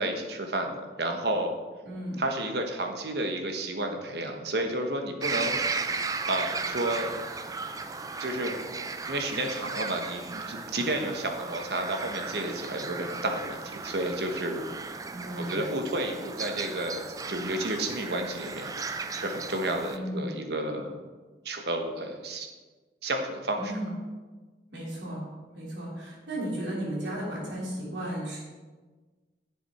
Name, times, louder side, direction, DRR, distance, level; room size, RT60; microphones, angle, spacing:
voice 1, 0.0-1.5 2.2-5.9 6.2-7.1 8.2-8.8 9.0-14.6 15.4-21.0 21.4-22.5 23.0-23.7, right 1 dB, 60° right, 4 dB, 1.1 m, -31 dB
voice 2, 1.8-2.2 15.1-15.7 19.9-20.3 23.6-24.0 24.7-25.2 25.5-28.4, right 1 dB, 75° right, -4 dB, 3.2 m, -34 dB
sound 1, 5.2-20.0, right 4 dB, 20° right, 0.4 m, -35 dB
10.5 x 7.0 x 4.3 m, 1.3 s
head